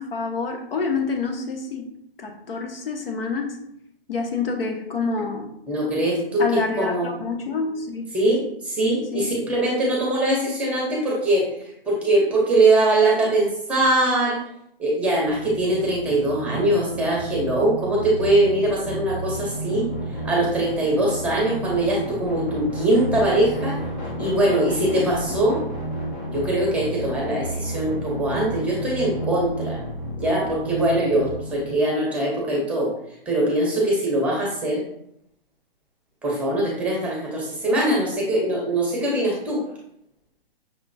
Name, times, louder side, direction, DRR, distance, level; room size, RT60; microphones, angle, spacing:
voice 1, 0.0-1.8 2.2-3.6 4.1-5.5 6.4-8.0 9.1-9.2, left 4 dB, 70° left, 3 dB, 1.1 m, -27 dB
voice 2, 5.7-7.1 8.1-11.4 11.9-14.4 14.8-19.8 20.2-23.8 24.2-25.6 26.3-29.8 30.2-32.9 33.3-34.8 36.2-39.6, right 1 dB, 5° right, -3 dB, 0.8 m, -22 dB
sound 1, 15.2-31.7, right 1 dB, 10° left, 0.4 m, -31 dB
6.1 x 2.9 x 2.6 m, 0.73 s
hypercardioid pair, 145°, 30 cm